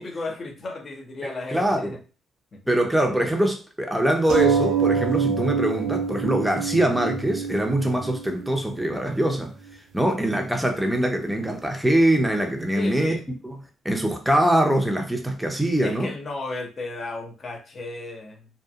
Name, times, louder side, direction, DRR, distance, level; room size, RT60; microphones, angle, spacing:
voice 1, 0.0-2.0 2.5-2.6 12.8-13.3 15.8-18.5, left 3 dB, 40° left, 0.6 m, -34 dB
voice 2, 1.2-2.0 2.7-9.5 9.9-13.2 13.4-16.1, right 1 dB, 5° right, 0.6 m, -23 dB
sound 1, 4.3-9.3 10.0-10.1 10.4-10.5, right 6 dB, 75° right, 0.5 m, -26 dB
2.8 x 2.3 x 2.3 m
cardioid pair, 90°, 0 cm